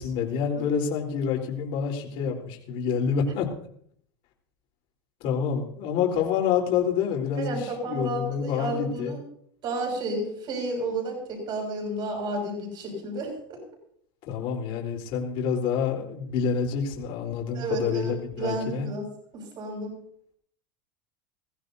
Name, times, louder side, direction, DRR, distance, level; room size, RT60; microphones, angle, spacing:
voice 1, 0.0-3.5 5.2-9.1 14.3-18.9, left 7 dB, 55° left, 0 dB, 4.0 m, -27 dB
voice 2, 7.3-9.2 9.6-13.6 17.5-18.1 18.4-19.0 19.3-20.0, right 2 dB, 40° right, 1 dB, 6.3 m, -31 dB
22.0 x 15.0 x 2.8 m, 0.64 s
supercardioid pair, 135°, 12 cm